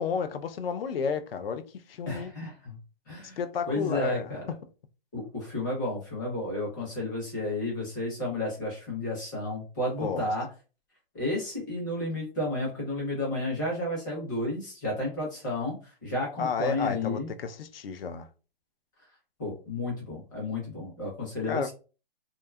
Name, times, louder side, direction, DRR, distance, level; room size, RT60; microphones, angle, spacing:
voice 1, 0.0-2.3 3.4-4.4 10.0-10.3 16.4-18.3 21.5-21.7, left 6 dB, 70° left, 0.5 m, -32 dB
voice 2, 2.1-2.8 3.1-3.4 3.7-4.4 5.1-10.5 11.1-17.3 19.4-21.7, left 1 dB, 20° left, 0.7 m, -32 dB
2.7 x 2.3 x 2.3 m
hypercardioid pair, 175°, 30 cm